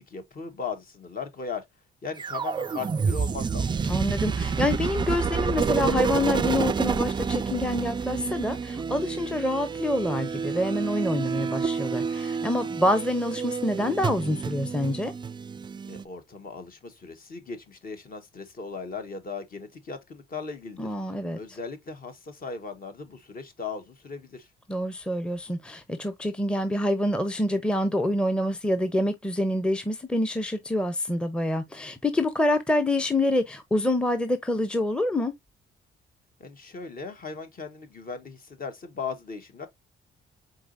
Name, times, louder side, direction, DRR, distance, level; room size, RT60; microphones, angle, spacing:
voice 1, 0.0-1.6 2.0-3.7 15.9-24.5 36.4-39.7, left 5 dB, 45° left, 1.2 m, -38 dB
sound 1, 2.2-16.0, right 5 dB, 25° right, 0.3 m, -29 dB
voice 2, 3.9-15.1 20.8-21.4 24.7-35.3, left 1 dB, 5° left, 0.6 m, -26 dB
4.7 x 3.9 x 2.5 m
cardioid pair, 90°, 20 cm